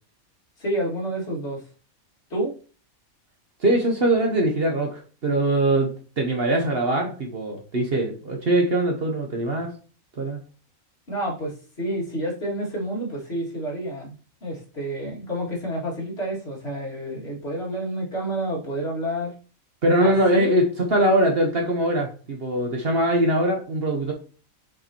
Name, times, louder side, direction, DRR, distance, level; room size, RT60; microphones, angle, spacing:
voice 1, 0.6-1.6 2.3-2.5 11.1-14.1 14.4-19.3 20.0-20.5, right 1 dB, 45° left, -5 dB, 2.7 m, -29 dB
voice 2, 3.6-9.7 10.2-10.4 19.8-24.1, right 1 dB, 45° right, 2 dB, 1.1 m, -22 dB
6.7 x 5.2 x 3.0 m, 0.37 s
omnidirectional pair, 1.5 m